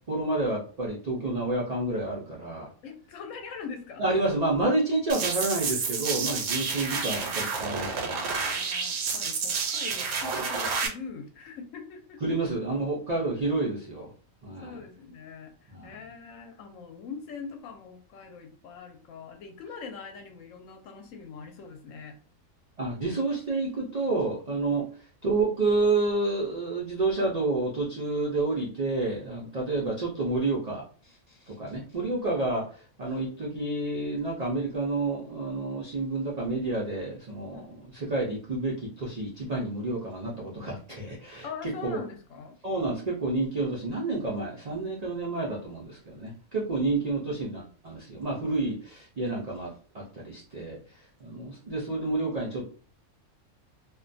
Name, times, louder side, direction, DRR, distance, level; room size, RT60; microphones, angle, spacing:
voice 1, 0.1-2.7 4.0-8.3 12.2-14.1 14.4-14.8 15.7-16.0 22.8-24.9 25.2-31.2 31.5-41.5 41.8-42.0 42.6-50.8 51.2-52.6, right 2 dB, 70° right, -4 dB, 0.3 m, -29 dB
voice 2, 2.8-4.2 8.3-12.4 14.6-22.2 24.7-24.8 37.5-37.7 41.4-42.6, left 5 dB, 70° left, 5 dB, 0.9 m, -42 dB
sound 1, 5.1-10.9, right 5 dB, 90° right, 1.1 m, -30 dB
2.4 x 2.2 x 2.5 m, 0.40 s
omnidirectional pair, 1.5 m